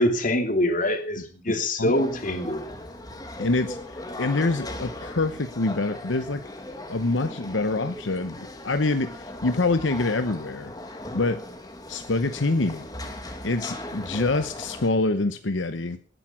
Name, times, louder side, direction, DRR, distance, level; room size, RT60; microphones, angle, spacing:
voice 1, 0.0-2.7, left 1 dB, 45° left, 6 dB, 2.8 m, -24 dB
sound 1, 1.9-14.9, left 1 dB, 20° left, 2.2 m, -38 dB
voice 2, 3.4-6.4 6.9-10.7 11.1-11.5 11.9-12.9 13.2-16.0, left 2 dB, 75° left, 10 dB, 0.9 m, -26 dB
18.5 x 10.5 x 5.9 m, 0.40 s
head